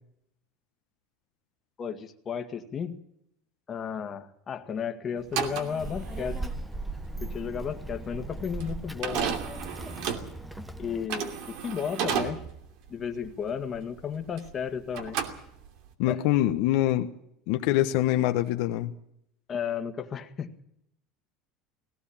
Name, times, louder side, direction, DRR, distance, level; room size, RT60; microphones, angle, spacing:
voice 1, 1.8-3.0 3.7-6.4 7.2-9.4 10.8-12.4 12.9-15.2 16.1-16.3 19.5-20.6, left 7 dB, 30° left, 1.9 m, -33 dB
sound 1, 5.2-14.6 14.9-15.9, right 8 dB, 65° right, 2.7 m, -34 dB
Child speech kid speaking, 5.8-11.1, right 2 dB, 5° right, 1.0 m, -38 dB
voice 2, 16.0-17.1 17.5-18.9, left 14 dB, 70° left, 1.2 m, -24 dB
18.5 x 17.0 x 8.8 m
supercardioid pair, 125°, 0 cm